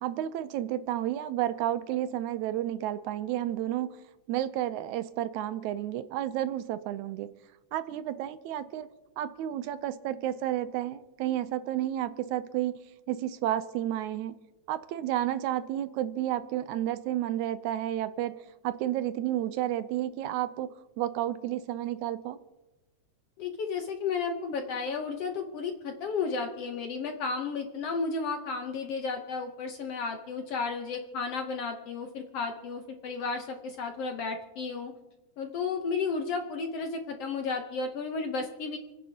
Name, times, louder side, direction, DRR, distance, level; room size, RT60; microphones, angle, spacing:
voice 1, 0.0-3.9 4.3-7.3 7.7-8.9 9.2-12.8 13.1-14.3 14.7-18.3 18.6-20.7 21.0-22.4, right 12 dB, 80° right, 13 dB, 1.8 m, -31 dB
voice 2, 23.4-34.9 35.4-38.8, left 4 dB, 65° left, 4 dB, 1.6 m, -33 dB
29.0 x 10.0 x 2.8 m, 1.1 s
omnidirectional pair, 3.6 m